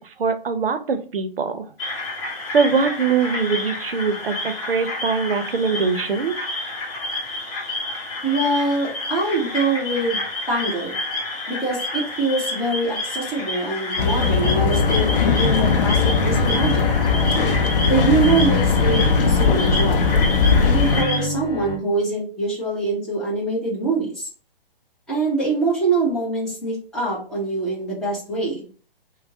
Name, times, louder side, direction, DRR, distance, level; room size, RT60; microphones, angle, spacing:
voice 1, 0.0-1.7 2.5-6.3, right 5 dB, 70° right, 9 dB, 0.6 m, -22 dB
sound 1, 1.8-21.3, left 2 dB, 20° left, 1.0 m, -29 dB
voice 2, 8.2-10.2 10.5-10.9 11.5-16.9 17.8-20.1 20.6-24.3 25.1-28.7, right 3 dB, ahead, -7 dB, 0.7 m, -24 dB
sound 2, 14.0-21.0, left 5 dB, 65° left, 0.5 m, -19 dB
Bowed string instrument, 14.2-21.7, equal, 45° left, 1.1 m, -28 dB
3.2 x 2.0 x 2.7 m, 0.41 s
figure-of-eight pair, 130°, 29 cm